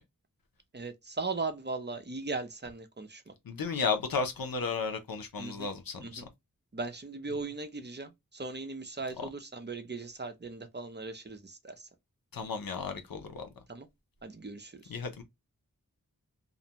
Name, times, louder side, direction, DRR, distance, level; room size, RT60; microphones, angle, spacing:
voice 1, 0.7-3.3 5.4-5.7 6.0-6.3 6.7-11.9 13.7-13.9 14.2-14.9, right 3 dB, 30° right, 0.5 m, -38 dB
voice 2, 3.4-6.2 9.2-9.3 12.3-13.5 14.9-15.2, left 5 dB, 90° left, 0.7 m, -33 dB
2.5 x 2.1 x 2.7 m
wide cardioid pair, 65°, 34 cm